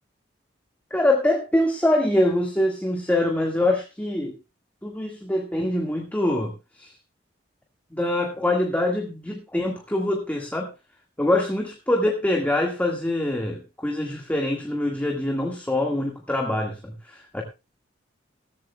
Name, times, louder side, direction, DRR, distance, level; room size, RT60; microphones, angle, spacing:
voice 1, 0.9-4.4 4.8-6.5 6.8-6.9 7.9-10.7 11.2-17.4, left 1 dB, 10° left, 1 dB, 1.7 m, -24 dB
17.0 x 14.0 x 2.2 m, 0.27 s
head